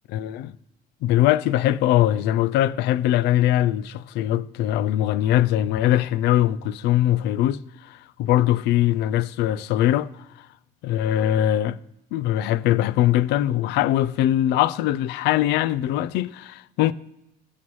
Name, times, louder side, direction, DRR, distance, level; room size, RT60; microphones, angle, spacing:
voice 1, 0.1-0.5 1.0-10.1 10.8-11.8 12.1-16.9, left 13 dB, 85° left, 0.4 m, -21 dB
15.5 x 5.7 x 3.1 m
cardioid pair, 110°, 17 cm